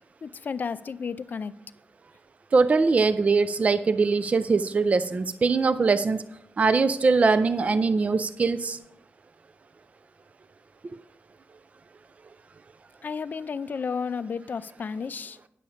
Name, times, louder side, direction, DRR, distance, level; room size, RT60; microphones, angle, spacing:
voice 1, 0.2-1.5 13.0-15.4, left 5 dB, 50° left, 0.4 m, -32 dB
voice 2, 2.5-6.2 6.6-8.8, right 4 dB, 35° right, 0.4 m, -22 dB
9.9 x 7.1 x 4.9 m
wide cardioid pair, 150°, 4 cm